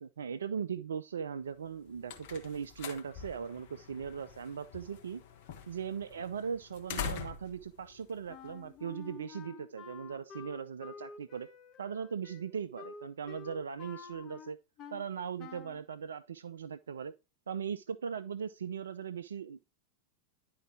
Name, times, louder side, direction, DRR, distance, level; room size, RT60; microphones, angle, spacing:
voice 1, 0.0-5.2 5.7-11.5 11.8-14.6 14.9-17.1 17.5-19.7, right 7 dB, 65° right, 0.3 m, -39 dB
sound 1, 1.6-9.0, left 6 dB, 50° left, 1.5 m, -45 dB
Wind instrument woodwind instrument, 8.3-15.1 15.4-15.8, left 6 dB, 30° left, 1.1 m, -49 dB
11.0 x 3.8 x 4.7 m
figure-of-eight pair, 90°, 0 cm